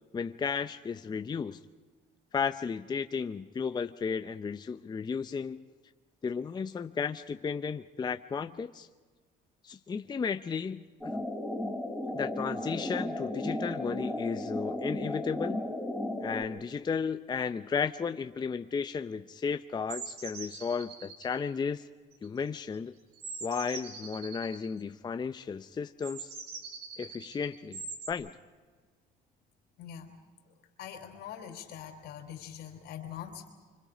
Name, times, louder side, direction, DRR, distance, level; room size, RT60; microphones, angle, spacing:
voice 1, 0.1-1.6 2.3-5.6 6.2-8.9 9.6-11.2 12.1-15.6 16.2-21.9 22.2-23.0 23.4-26.3 27.0-27.8 28.1-28.3, left 6 dB, 25° left, 9 dB, 0.6 m, -34 dB
sound 1, 11.0-16.4, left 1 dB, 5° right, 3.1 m, -34 dB
sound 2, 19.9-21.3 22.1-22.7 23.1-24.7 26.0-28.1, right 4 dB, 80° right, 5.9 m, -42 dB
voice 2, 29.8-30.1 30.8-33.5, left 9 dB, 75° left, 4 dB, 3.5 m, -43 dB
26.0 x 25.5 x 5.1 m, 1.5 s
cardioid pair, 110°, 17 cm